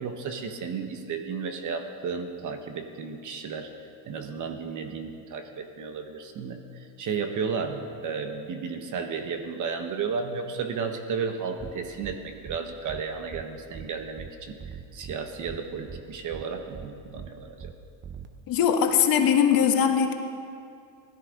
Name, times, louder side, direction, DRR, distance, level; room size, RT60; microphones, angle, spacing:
voice 1, 0.0-3.7 4.1-14.6 14.9-17.7, right 5 dB, 45° right, 6 dB, 1.4 m, -33 dB
sound 1, 11.6-11.7 12.0-12.2 12.5-12.6 12.9-13.0 13.3-13.4 13.7-13.9 14.2-14.3 14.6-15.2 15.5-15.6 15.9-16.0 16.3-16.4 16.7-16.9 17.2-17.3 17.6-17.7 18.0-18.3, right 7 dB, 25° right, 0.8 m, -40 dB
voice 2, 18.5-20.1, left 8 dB, 50° left, 5 dB, 1.5 m, -21 dB
17.0 x 13.0 x 5.2 m, 2.4 s
supercardioid pair, 115°, 44 cm